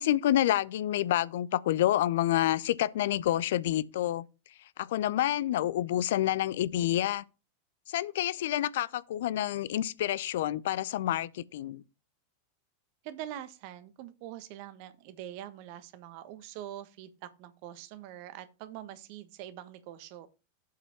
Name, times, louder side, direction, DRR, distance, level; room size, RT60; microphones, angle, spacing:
voice 1, 0.0-4.2 4.8-7.2 7.9-11.8, left 13 dB, 65° left, 0.5 m, -28 dB
voice 2, 13.0-20.3, right 12 dB, 55° right, 1.2 m, -44 dB
8.0 x 5.1 x 6.0 m
figure-of-eight pair, 90°, 0 cm